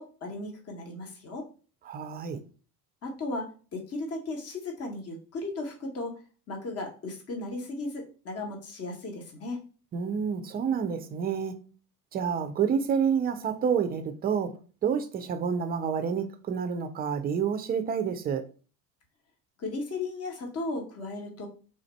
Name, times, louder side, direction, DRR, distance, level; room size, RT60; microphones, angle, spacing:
voice 1, 0.0-1.5 3.0-6.1 6.5-9.6 19.6-21.5, left 2 dB, 30° left, 1.2 m, -36 dB
voice 2, 1.9-2.4 9.9-11.6 12.1-14.5 14.8-18.4, right 7 dB, 20° right, 0.4 m, -28 dB
3.6 x 2.5 x 4.1 m
figure-of-eight pair, 70°, 49 cm